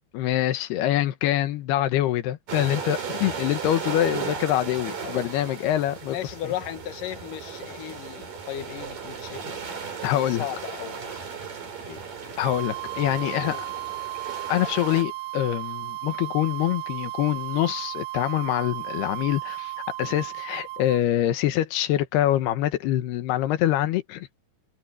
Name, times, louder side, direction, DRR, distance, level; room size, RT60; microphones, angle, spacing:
voice 1, 0.1-6.2 10.0-10.4 12.4-13.6 14.5-19.7 20.0-24.3, left 13 dB, 85° left, 3.2 m, -25 dB
sound 1, 2.5-15.0, right 6 dB, 55° right, 6.2 m, -36 dB
voice 2, 6.1-9.6 10.3-11.2 11.9-12.4 13.4-13.7, left 12 dB, 65° left, 2.7 m, -36 dB
sound 2, 12.4-21.0, right 18 dB, 80° right, 2.6 m, -35 dB
omnidirectional pair, 4.5 m